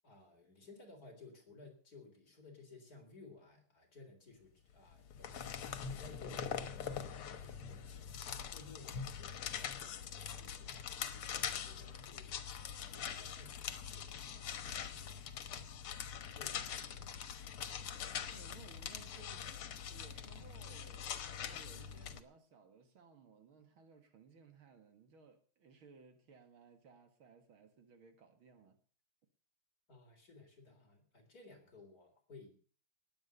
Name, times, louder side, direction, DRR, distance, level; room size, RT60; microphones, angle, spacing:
voice 1, 0.0-5.5 5.9-9.9 10.3-10.8 11.1-12.3 12.8-15.3 16.2-17.2 29.9-32.5, left 3 dB, 45° left, 4.1 m, -58 dB
sound 1, 4.9-22.2, left 8 dB, 90° left, 2.2 m, -43 dB
voice 2, 18.1-19.5 19.9-28.8, right 4 dB, 70° right, 2.7 m, -61 dB
19.0 x 8.5 x 6.8 m
omnidirectional pair, 2.3 m